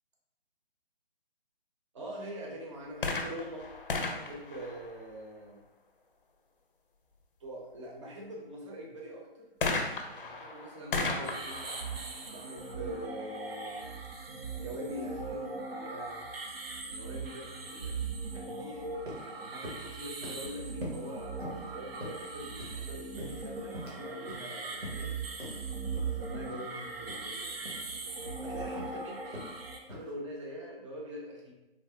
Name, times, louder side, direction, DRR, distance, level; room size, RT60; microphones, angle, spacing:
voice 1, 1.9-3.7 4.0-5.6 7.4-9.6 10.0-11.8 12.3-14.0 14.6-16.2 16.9-18.0 18.3-19.0 19.2-25.2 26.1-27.5 28.0-28.1 28.4-29.5 29.9-31.5, equal, 30° right, -2 dB, 0.6 m, -44 dB
sound 1, 2.9-5.5 9.6-13.2 14.0-14.1, left 3 dB, 60° left, 0.5 m, -36 dB
sound 2, 11.2-29.8, right 4 dB, 70° right, 0.6 m, -39 dB
sound 3, 18.7-18.8 19.1-19.3 19.6-19.9 20.2-20.5 20.8-21.1 21.4-21.7 22.0-22.8 23.2-24.0 24.3-24.5 24.8-25.1 25.4-25.6 25.9-26.1 26.5-26.7 27.0-27.2 27.6-27.9 28.2-28.4 28.8-29.0 29.3-29.5 29.9-30.1, equal, 90° right, 1.0 m, -43 dB
3.3 x 2.1 x 2.3 m, 1.0 s
figure-of-eight pair, 145°, 31 cm